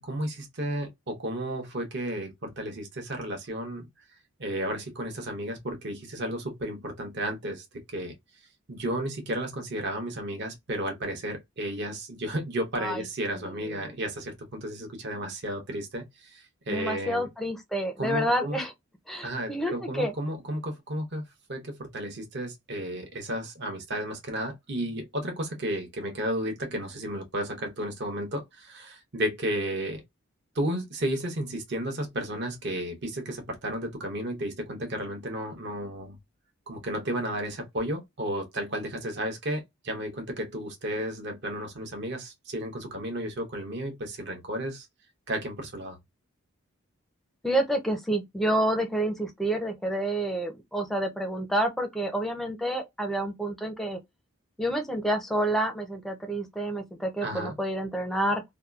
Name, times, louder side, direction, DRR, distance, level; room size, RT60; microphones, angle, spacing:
voice 1, 0.0-3.9 4.4-8.1 8.7-17.3 18.0-18.6 19.2-21.2 21.5-30.0 30.5-36.2 36.7-44.9 45.3-46.0 57.2-57.6, right 1 dB, 55° right, 0.9 m, -33 dB
voice 2, 13.3-13.9 16.7-18.7 19.1-20.1 47.4-54.0 54.6-58.4, right 1 dB, ahead, 0.5 m, -29 dB
2.8 x 2.3 x 2.3 m
head